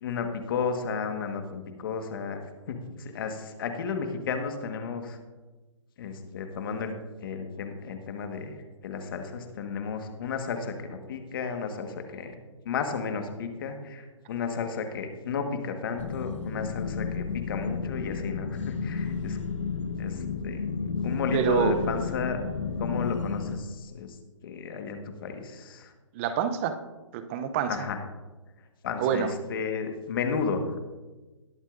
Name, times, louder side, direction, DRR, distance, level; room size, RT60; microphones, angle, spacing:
voice 1, 0.0-5.2 6.0-6.9 7.2-8.6 8.8-12.3 12.6-19.4 20.0-22.4 22.8-24.2 24.4-25.9 27.7-28.0 28.8-30.8, left 5 dB, 45° left, 6 dB, 1.4 m, -33 dB
sound 1, 16.0-23.6, left 5 dB, 70° left, 1.3 m, -32 dB
voice 2, 21.3-21.8 26.1-26.8 27.1-27.8 29.0-29.3, right 9 dB, 25° right, 10 dB, 0.6 m, -26 dB
20.0 x 7.2 x 2.5 m, 1.2 s
hypercardioid pair, 150°, 16 cm